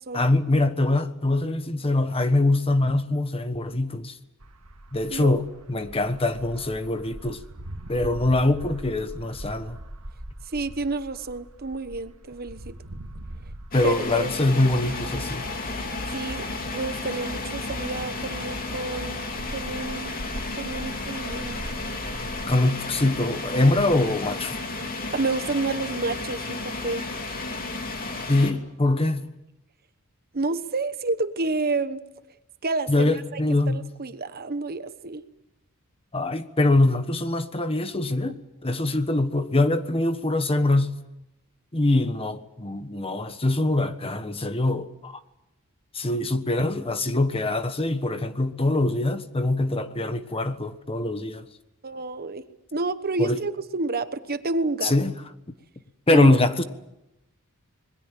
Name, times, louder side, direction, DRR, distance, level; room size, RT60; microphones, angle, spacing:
voice 1, 0.1-4.2 4.9-7.4 7.9-9.8 13.7-15.4 22.5-24.6 28.3-29.2 32.9-33.8 36.1-38.3 38.6-41.0 41.7-45.1 45.9-51.5 53.2-53.4 54.8-55.1 56.1-56.6, left 2 dB, 25° left, 1.3 m, -23 dB
sound 1, 4.4-18.2 18.5-22.6, right 1 dB, 80° right, 1.9 m, -42 dB
voice 2, 10.5-12.8 13.8-14.3 16.1-16.5 16.7-19.2 19.5-20.1 20.6-21.6 25.1-27.0 30.3-32.0 32.6-33.4 33.7-35.2 38.3-38.4 51.8-52.4 52.7-54.9 56.1-56.4, right 3 dB, 45° right, 1.1 m, -29 dB
sound 2, 13.7-28.5, left 3 dB, 40° left, 2.9 m, -33 dB
sound 3, 14.1-21.9, left 1 dB, 60° left, 1.5 m, -41 dB
26.5 x 21.5 x 7.6 m
head